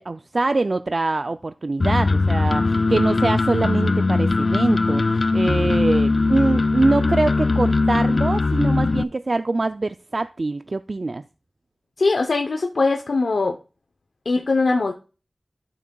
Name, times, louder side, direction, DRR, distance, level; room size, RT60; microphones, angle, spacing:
voice 1, 0.0-11.2, right 2 dB, 60° right, 0.3 m, -23 dB
sound 1, 1.8-9.0, left 3 dB, 65° left, 0.3 m, -20 dB
voice 2, 12.0-13.6 14.2-14.9, left 3 dB, 85° left, 0.7 m, -21 dB
12.0 x 6.0 x 2.3 m
wide cardioid pair, 50°, 0 cm